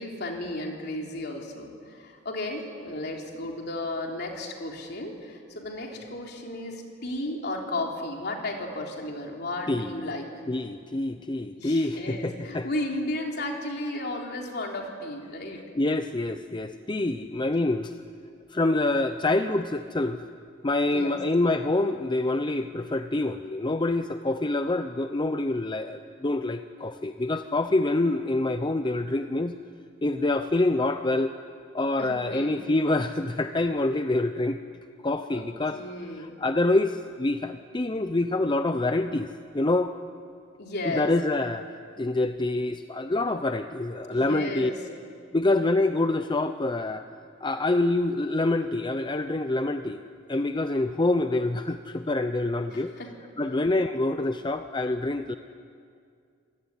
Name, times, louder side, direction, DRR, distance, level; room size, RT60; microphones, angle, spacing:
voice 1, 0.0-10.3 11.6-15.6 20.9-21.2 32.0-32.5 35.3-35.5 35.7-36.4 40.6-41.1 44.1-44.8 52.7-53.1, left 1 dB, 60° left, 1 dB, 3.6 m, -34 dB
voice 2, 9.7-10.1 10.5-12.7 15.8-17.9 18.5-20.2 20.6-29.5 30.0-31.3 31.7-34.6 35.0-35.8 36.1-39.3 39.5-39.9 40.8-41.7 42.0-44.7 45.3-47.0 47.4-50.0 50.3-52.9 53.4-55.4, left 2 dB, 25° left, 9 dB, 0.7 m, -26 dB
26.5 x 17.5 x 9.8 m, 2.3 s
head